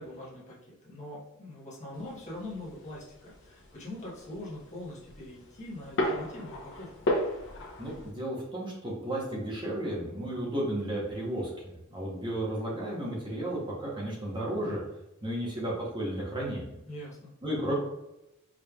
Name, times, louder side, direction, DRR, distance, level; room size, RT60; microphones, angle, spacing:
voice 1, 0.0-6.9 16.9-17.3, left 1 dB, 35° left, -6 dB, 1.2 m, -43 dB
sound 1, 1.9-8.1, left 1 dB, 60° left, 0.9 m, -36 dB
voice 2, 7.8-14.8 15.2-16.7 17.4-17.8, right 1 dB, 20° right, -5 dB, 1.0 m, -33 dB
4.8 x 3.2 x 2.3 m, 0.90 s
head